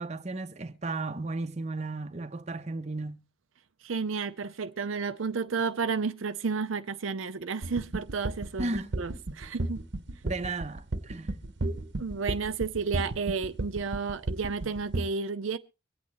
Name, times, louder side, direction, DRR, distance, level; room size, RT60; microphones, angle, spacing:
voice 1, 0.0-3.2 8.6-8.9 10.2-11.3, right 2 dB, 35° right, 0.8 m, -34 dB
voice 2, 3.8-9.8 12.0-15.6, right 5 dB, 80° right, 0.6 m, -32 dB
sound 1, 7.6-15.0, right 2 dB, 60° right, 1.0 m, -33 dB
24.0 x 8.6 x 3.0 m
head